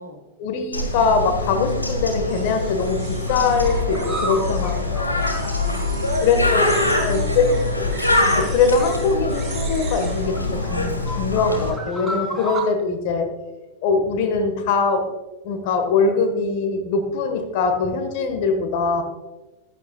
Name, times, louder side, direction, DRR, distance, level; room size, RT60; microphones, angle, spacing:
voice 1, 0.4-5.3 6.2-6.7 7.0-7.6 8.3-13.3 13.8-15.1 15.4-19.0, left 4 dB, 45° left, 6 dB, 1.6 m, -22 dB
Bird, 0.7-11.7, left 2 dB, 85° left, 1.6 m, -24 dB
sound 1, 0.9-1.4 1.7-2.7 3.0-6.4 6.6-6.7 7.0-9.0 9.3-12.6, right 1 dB, 5° right, 3.8 m, -35 dB
sound 2, 2.3-4.8 5.2-10.3, right 5 dB, 25° right, 4.0 m, -40 dB
voice 2, 4.5-5.0 5.4-6.4 6.7-8.4, equal, 85° right, 3 dB, 1.6 m, -34 dB
14.0 x 11.5 x 2.4 m, 1.2 s
figure-of-eight pair, 90°, 0 cm